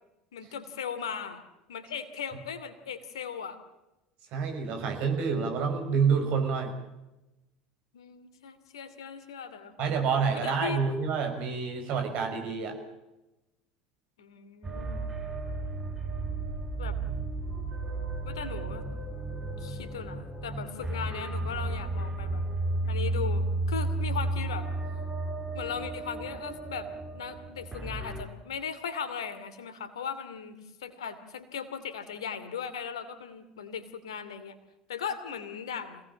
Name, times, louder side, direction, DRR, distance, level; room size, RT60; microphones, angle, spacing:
voice 1, 0.3-1.4 1.7-3.6 7.9-10.0 10.3-10.8 14.2-15.1 16.8-17.0 18.2-18.9 19.6-22.4 22.9-24.7 25.5-34.5 34.9-36.0, left 7 dB, 70° left, 11 dB, 2.6 m, -38 dB
voice 2, 4.3-6.7 9.8-12.8, right 6 dB, 50° right, 4 dB, 5.9 m, -28 dB
sound 1, 14.6-28.3, right 2 dB, 15° right, 4.5 m, -33 dB
26.0 x 18.5 x 7.5 m, 0.99 s
figure-of-eight pair, 70°, 3 cm